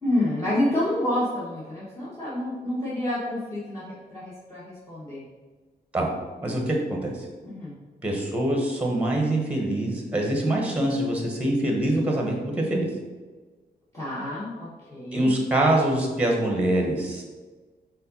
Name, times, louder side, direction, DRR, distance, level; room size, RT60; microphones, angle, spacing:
voice 1, 0.0-5.3 7.4-7.7 13.9-15.3, left 1 dB, 20° left, -10 dB, 1.5 m, -28 dB
voice 2, 6.4-7.1 8.0-12.9 15.1-17.2, right 1 dB, 10° right, 0 dB, 1.2 m, -24 dB
5.5 x 3.8 x 5.5 m, 1.3 s
wide cardioid pair, 155°, 17 cm